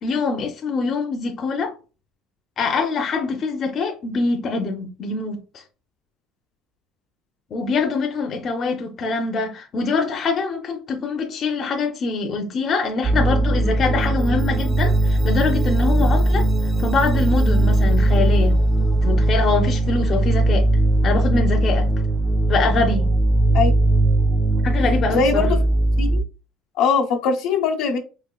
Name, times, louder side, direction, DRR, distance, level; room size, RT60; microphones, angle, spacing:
voice 1, 0.0-1.7 2.6-5.6 7.5-16.5 16.8-18.5 19.0-20.7 21.0-21.9 22.5-23.1 24.6-25.5, left 4 dB, 45° left, 0.6 m, -24 dB
sound 1, 13.0-26.2, right 2 dB, 10° right, 0.5 m, -19 dB
voice 2, 25.1-25.6 26.0-26.2 26.8-28.0, left 5 dB, 80° left, 1.0 m, -20 dB
4.2 x 2.3 x 2.3 m
cardioid pair, 115°, 0 cm